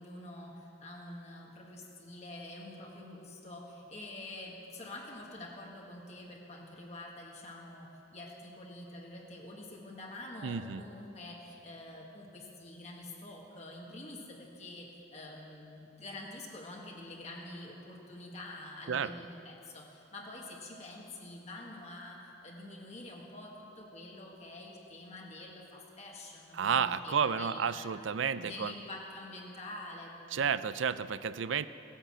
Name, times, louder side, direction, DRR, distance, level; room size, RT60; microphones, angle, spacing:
voice 1, 0.0-27.9 28.3-30.6, left 1 dB, 35° left, -1 dB, 1.7 m, -47 dB
voice 2, 10.4-10.8 18.9-19.1 26.5-28.7 30.3-31.7, right 6 dB, 80° right, 14 dB, 0.5 m, -31 dB
17.0 x 10.0 x 7.5 m, 2.8 s
head